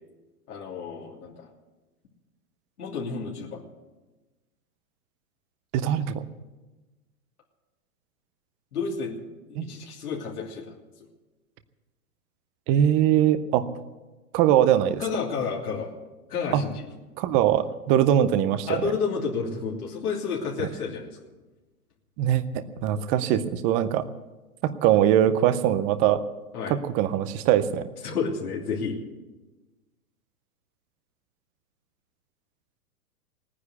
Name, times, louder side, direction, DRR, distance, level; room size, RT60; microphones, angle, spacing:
voice 1, 0.5-1.5 2.8-3.6 8.7-9.2 9.5-10.7 15.0-15.9 16.3-16.8 18.7-21.2 26.5-26.8 28.0-29.0, left 5 dB, 80° left, -3 dB, 3.2 m, -30 dB
voice 2, 5.7-6.2 9.6-9.7 12.7-13.6 14.3-15.0 16.5-16.7 17.2-18.8 20.6-20.7 22.2-24.1 24.6-26.2 26.7-27.9, right 11 dB, 20° right, 12 dB, 0.4 m, -22 dB
18.0 x 9.9 x 8.0 m, 1.2 s
hypercardioid pair, 125°, 45 cm